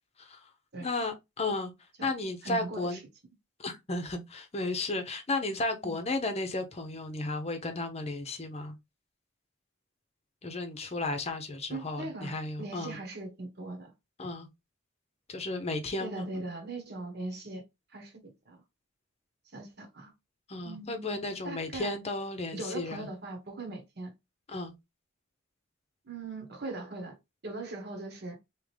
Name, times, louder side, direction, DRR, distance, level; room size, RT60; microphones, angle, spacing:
voice 1, 0.8-1.7 2.0-3.0 3.6-8.7 10.4-13.0 14.2-14.5 15.3-16.3 20.5-23.1 24.5-24.7, left 2 dB, 35° left, 0.7 m, -34 dB
voice 2, 2.4-3.0 5.8-5.9 11.7-13.9 16.0-17.6 17.9-18.6 19.5-20.1 20.6-22.0 22.5-24.1 26.0-27.2 27.4-28.4, right 2 dB, 55° right, 1.2 m, -40 dB
3.6 x 3.0 x 3.3 m
head